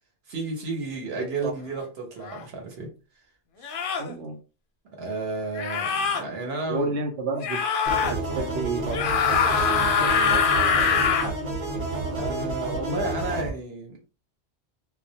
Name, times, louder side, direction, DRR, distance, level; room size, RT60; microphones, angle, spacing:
voice 1, 0.3-2.9 3.6-3.7 4.9-6.9 12.2-14.0, right 3 dB, 65° right, 1.0 m, -32 dB
voice 2, 1.2-1.5 3.9-4.4 6.7-7.6 8.0-11.3, right 3 dB, 90° right, 0.9 m, -32 dB
sound 1, 2.3-2.4 3.6-4.1 5.5-6.2 7.4-8.1 8.9-11.3, left 6 dB, 60° left, 0.6 m, -23 dB
sound 2, 7.9-13.5, right 2 dB, 40° right, 0.8 m, -30 dB
2.2 x 2.1 x 2.7 m
omnidirectional pair, 1.1 m